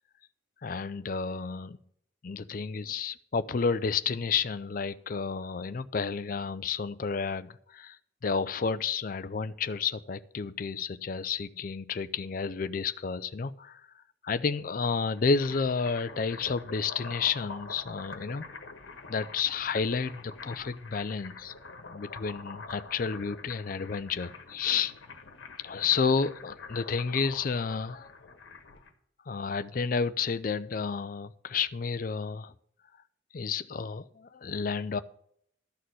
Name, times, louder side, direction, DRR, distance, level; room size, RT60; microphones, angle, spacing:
voice 1, 0.6-1.8 2.2-8.0 8.2-13.8 14.2-18.5 19.1-21.5 21.9-24.9 25.6-28.1 29.3-32.5 33.3-35.0, left 5 dB, 45° left, 0.4 m, -31 dB
sound 1, 15.0-28.9, left 4 dB, 75° left, 1.3 m, -46 dB
12.5 x 4.2 x 7.8 m
head